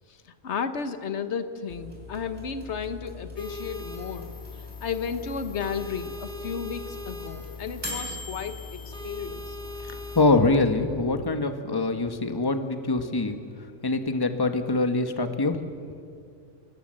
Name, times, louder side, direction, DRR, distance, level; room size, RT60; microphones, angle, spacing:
voice 1, 0.1-9.6, left 6 dB, 60° left, 10 dB, 1.5 m, -34 dB
sound 1, 1.7-10.8, left 3 dB, 20° right, 5.4 m, -40 dB
sound 2, 3.4-10.2, left 1 dB, 5° left, 3.3 m, -42 dB
voice 2, 9.8-13.4 13.8-15.6, left 3 dB, 20° left, 8 dB, 1.2 m, -24 dB
26.5 x 20.0 x 7.6 m, 2.3 s
omnidirectional pair, 1.4 m